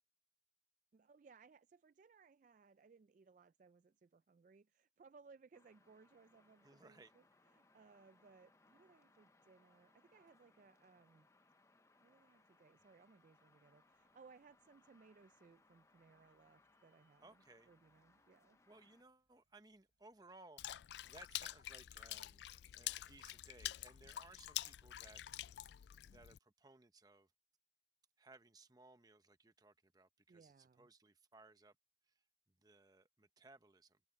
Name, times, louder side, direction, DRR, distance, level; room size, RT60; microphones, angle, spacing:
voice 1, 0.9-11.3 12.0-18.6 30.3-30.9, right 4 dB, 45° right, 0.3 m, -65 dB
sound 1, 5.5-19.0, left 3 dB, 15° left, 0.7 m, -72 dB
voice 2, 6.6-7.1 17.2-17.7 18.7-22.4 22.7-25.2 26.0-27.3 28.2-31.8 32.1-32.2 32.6-34.0, right 3 dB, 20° right, 0.9 m, -63 dB
Bus, 12.2-24.1, right 2 dB, 85° right, 6.3 m, -90 dB
Water / Splash splatter, 20.6-26.4, left 14 dB, 75° left, 0.3 m, -47 dB
open air
head